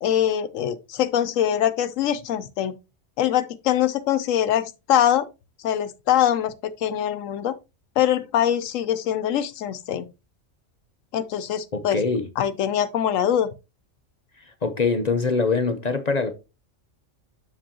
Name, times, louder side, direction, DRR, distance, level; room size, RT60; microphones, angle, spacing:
voice 1, 0.0-2.7 3.2-5.3 5.6-7.5 8.0-10.1 11.1-12.0 12.4-13.5, left 10 dB, 85° left, 1.0 m, -23 dB
voice 2, 11.7-12.2 14.6-16.3, left 4 dB, 40° left, 0.7 m, -23 dB
7.6 x 5.9 x 2.8 m
omnidirectional pair, 1.3 m